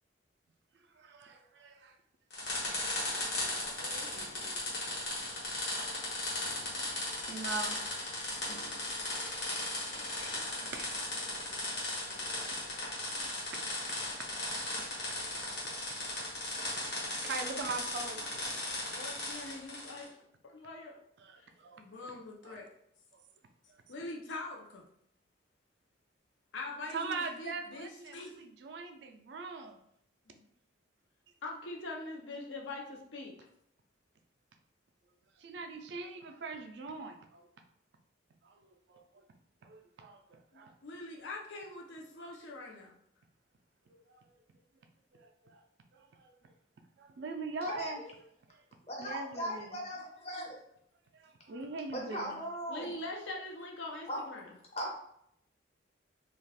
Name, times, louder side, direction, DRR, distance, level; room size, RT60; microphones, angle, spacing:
voice 1, 0.7-2.0 7.1-7.8 10.1-10.9 13.5-13.6 15.9-16.0 16.5-16.8 17.2-18.6 18.9-19.0 21.2-22.2 22.4-22.6 23.7-23.8 26.9-29.8 35.4-37.5 38.4-38.6 38.9-39.2 39.6-40.7 43.9-44.3 45.1-45.6 45.9-46.5 47.0-48.0 49.0-49.8 51.1-52.4, right 3 dB, 60° right, 5 dB, 0.3 m, -42 dB
sound 1, 2.3-20.1, left 2 dB, 60° left, 1.1 m, -37 dB
voice 2, 3.8-4.7 9.8-11.6 18.9-20.1 20.4-21.0 21.3-21.5 21.8-22.7 23.9-24.9 26.5-28.4 30.2-30.5 31.4-33.3 40.5-43.0 52.7-54.6, left 2 dB, 75° left, 0 dB, 0.6 m, -44 dB
voice 3, 47.6-48.1 48.9-50.6 51.9-52.9 54.1-54.2 54.8-55.0, equal, 35° left, -1 dB, 0.6 m, -38 dB
2.3 x 2.3 x 3.3 m, 0.74 s
head